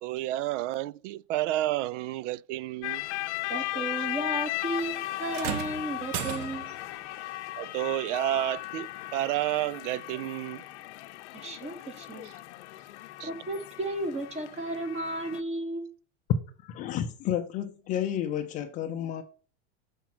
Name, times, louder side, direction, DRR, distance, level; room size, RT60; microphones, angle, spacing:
voice 1, 0.0-3.1 3.7-3.8 7.6-10.6 13.2-13.3, right 14 dB, 85° right, 0.5 m, -30 dB
sound 1, 2.8-15.4, left 18 dB, 70° left, 0.7 m, -37 dB
voice 2, 3.5-6.8 11.3-12.3 13.2-15.9, right 2 dB, 20° right, 1.1 m, -34 dB
sound 2, 5.3-6.9 8.3-8.5 9.3-9.4, right 10 dB, 35° right, 0.6 m, -35 dB
voice 3, 16.6-19.2, left 10 dB, 20° left, 0.4 m, -31 dB
7.2 x 5.1 x 5.9 m
supercardioid pair, 175°, 35 cm